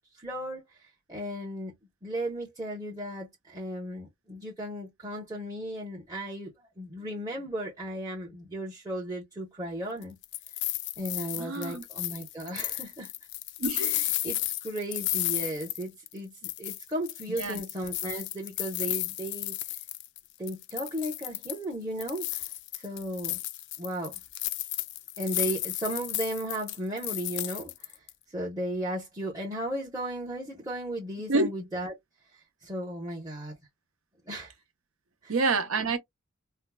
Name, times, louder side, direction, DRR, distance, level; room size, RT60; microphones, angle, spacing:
voice 1, 0.1-1.7 2.0-10.2 11.0-13.1 13.8-19.6 20.4-22.4 22.7-23.4 23.8-24.1 25.2-28.0 28.3-31.9 32.6-33.5 34.3-34.5 35.2-35.3, right 1 dB, 15° right, 0.8 m, -35 dB
sound 1, 10.0-16.2 16.4-20.2 20.5-21.6 22.0-28.1, left 15 dB, 50° left, 0.3 m, -33 dB
voice 2, 11.3-11.8 13.6-14.0 17.3-17.6 31.3-31.5 35.3-36.0, right 3 dB, 70° right, 0.8 m, -27 dB
4.5 x 2.0 x 2.2 m
head